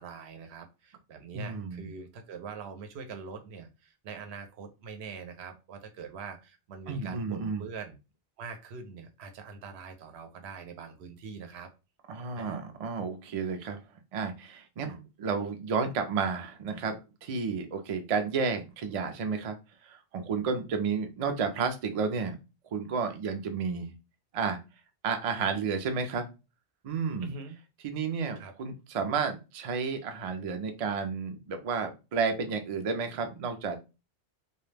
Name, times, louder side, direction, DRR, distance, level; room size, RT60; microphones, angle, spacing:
voice 1, 0.0-8.0 8.4-11.7 12.3-12.7 27.2-27.6 28.4-28.5, right 5 dB, 80° right, 0.8 m, -43 dB
voice 2, 1.3-1.9 6.9-7.6 12.1-13.8 14.1-19.6 19.8-22.4 22.7-23.9 24.3-24.6 25.0-26.3 26.8-27.3 27.8-33.8, right 5 dB, 55° right, 0.4 m, -31 dB
2.3 x 2.1 x 3.2 m
omnidirectional pair, 1.1 m